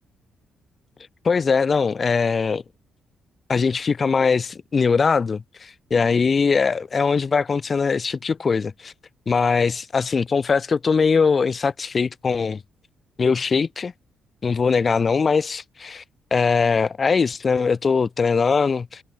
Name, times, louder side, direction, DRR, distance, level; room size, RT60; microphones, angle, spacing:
voice 1, 1.2-2.6 3.5-8.9 9.3-12.6 13.2-13.9 14.4-16.0 16.3-19.0, left 5 dB, 35° left, 2.3 m, -21 dB
open air
cardioid pair, 90°, 0 cm